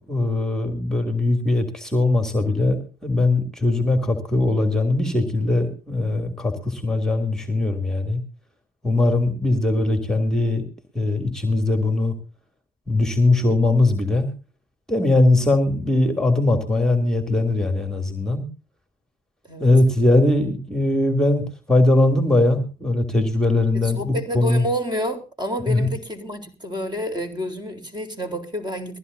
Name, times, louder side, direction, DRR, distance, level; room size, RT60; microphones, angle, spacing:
voice 1, 0.1-8.2 8.8-10.6 10.9-12.1 12.9-14.3 14.9-18.4 19.6-24.6 25.7-25.9, left 2 dB, 5° left, 3.0 m, -20 dB
voice 2, 23.7-29.0, equal, 20° right, 4.0 m, -29 dB
21.5 x 15.0 x 2.7 m
cardioid pair, 90°, 20 cm